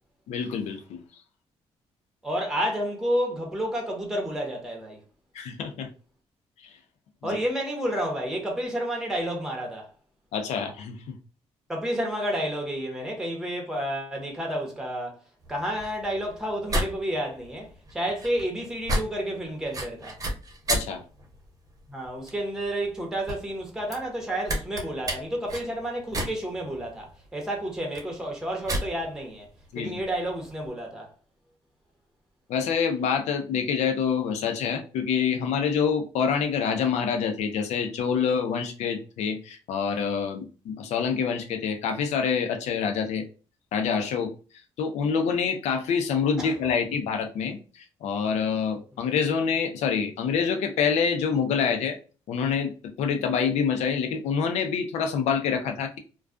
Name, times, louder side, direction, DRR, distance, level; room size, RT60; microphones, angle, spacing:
voice 1, 0.3-1.0 5.3-5.9 10.3-11.2 20.7-21.0 29.7-30.0 32.5-43.2 43.7-44.3 44.8-52.0 52.3-56.0, left 6 dB, 80° left, 0.6 m, -26 dB
voice 2, 2.2-5.0 7.2-9.9 11.7-15.2 15.5-20.2 21.9-29.5 29.7-31.1 46.4-46.5, equal, 5° right, 0.9 m, -30 dB
sound 1, 15.4-30.7, right 1 dB, 30° right, 0.9 m, -34 dB
2.3 x 2.2 x 2.3 m
cardioid pair, 85°, 11 cm